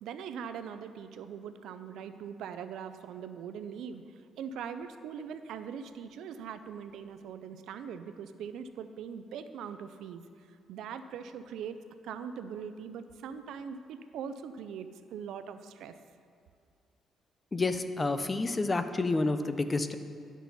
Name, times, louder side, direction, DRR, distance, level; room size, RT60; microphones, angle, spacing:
voice 1, 0.0-4.0 4.4-10.2 10.7-11.8 12.0-15.9, right 7 dB, 80° right, 10 dB, 0.4 m, -41 dB
voice 2, 17.5-20.0, left 3 dB, 25° left, 10 dB, 0.5 m, -29 dB
11.0 x 6.0 x 4.1 m, 2.3 s
cardioid pair, 90°, 0 cm